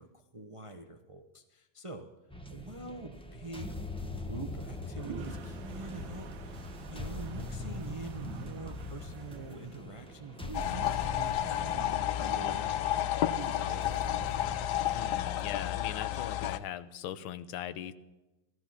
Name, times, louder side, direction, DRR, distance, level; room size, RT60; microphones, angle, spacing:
voice 1, 0.0-2.1 2.5-14.2, right 3 dB, 30° right, 5 dB, 0.5 m, -45 dB
sound 1, 2.3-16.6, left 2 dB, 5° left, 0.7 m, -42 dB
Toilet flush, 4.6-10.7, right 8 dB, 75° right, 1.6 m, -50 dB
sound 2, 10.5-16.6, left 12 dB, 65° left, 1.1 m, -31 dB
voice 2, 14.9-17.9, left 10 dB, 85° left, 13 dB, 1.6 m, -39 dB
17.0 x 14.0 x 5.8 m, 1.1 s
omnidirectional pair, 2.2 m